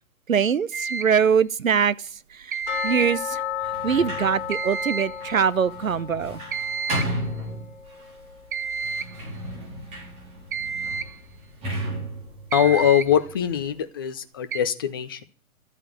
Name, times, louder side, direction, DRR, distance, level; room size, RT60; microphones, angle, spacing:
voice 1, 0.3-2.0 2.3-2.6 2.8-3.4 3.8-6.4, right 7 dB, 70° right, 0.9 m, -22 dB
sound 1, 0.7-1.2 2.5-3.2 4.5-5.2 6.5-7.2 8.5-9.2 10.5-11.2 12.5-13.2 14.5-14.6, right 5 dB, 40° right, 0.6 m, -30 dB
sound 2, 2.7-9.5 9.8-9.9 10.4-10.5 11.0-11.1, left 9 dB, 40° left, 4.6 m, -35 dB
Sliding door, 3.6-8.1 8.7-13.6, right 1 dB, 15° right, 4.4 m, -35 dB
voice 2, 12.5-15.2, left 9 dB, 15° left, 0.6 m, -22 dB
13.0 x 9.1 x 8.3 m
figure-of-eight pair, 135°, 42 cm